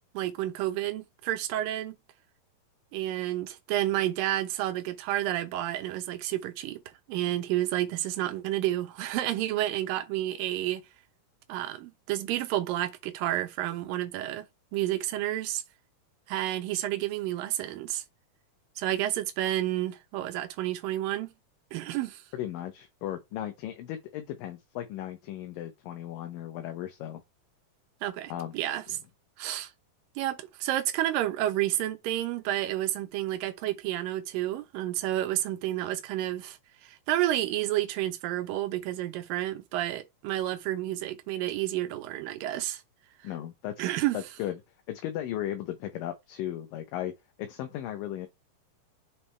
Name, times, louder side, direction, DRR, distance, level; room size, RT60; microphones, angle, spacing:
voice 1, 0.1-2.0 2.9-6.8 7.1-10.8 11.5-14.5 14.7-15.6 16.3-18.0 18.8-21.3 21.7-22.2 28.0-28.8 29.4-29.7 30.2-36.6 36.8-42.8 43.8-44.2, right 14 dB, 75° right, 2.6 m, -30 dB
voice 2, 22.3-27.2 28.3-28.6 28.9-29.0 43.2-44.6 44.9-47.1 47.4-48.3, left 12 dB, 80° left, 2.4 m, -36 dB
7.3 x 4.2 x 3.3 m
omnidirectional pair, 4.1 m